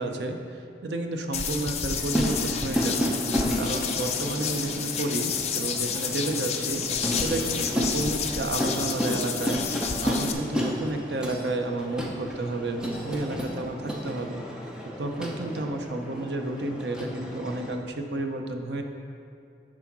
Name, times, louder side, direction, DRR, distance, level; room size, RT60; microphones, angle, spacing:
voice 1, 0.0-3.1 3.5-9.6 10.0-14.4 15.0-18.8, right 2 dB, 70° right, 4 dB, 0.7 m, -31 dB
sound 1, 1.3-10.3, left 7 dB, 35° left, 0.5 m, -30 dB
sound 2, 1.9-17.8, equal, 5° right, 0.7 m, -32 dB
7.6 x 4.9 x 6.0 m, 2.4 s
head